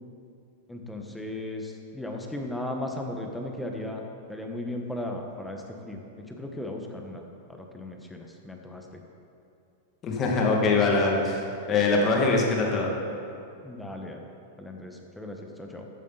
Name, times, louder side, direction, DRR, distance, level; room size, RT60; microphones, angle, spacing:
voice 1, 0.7-4.0 4.3-6.0 6.3-7.2 7.5-9.0 13.6-14.3 14.6-15.8, left 1 dB, 5° left, 2 dB, 1.3 m, -36 dB
voice 2, 10.0-12.9, left 3 dB, 30° left, -1 dB, 2.1 m, -23 dB
14.5 x 8.5 x 4.1 m, 2.6 s
hypercardioid pair, 125°, 0 cm